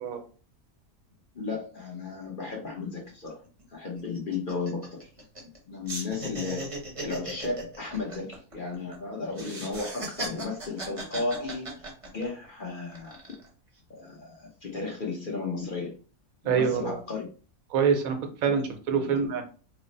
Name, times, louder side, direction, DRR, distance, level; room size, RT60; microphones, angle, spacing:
voice 1, 1.3-3.4 3.7-5.1 5.4-6.7 7.0-13.2 13.9-15.9 16.4-17.3 18.9-19.2, left 4 dB, 45° left, -1 dB, 0.8 m, -34 dB
sound 1, 3.1-3.2 3.4-3.6 4.0-5.6 5.9-9.0 9.3-12.5 12.9-13.5, right 2 dB, 30° right, 0.7 m, -38 dB
voice 2, 16.4-17.0 17.7-19.4, right 6 dB, 75° right, 5 dB, 1.1 m, -25 dB
3.2 x 2.0 x 3.8 m, 0.37 s
omnidirectional pair, 1.5 m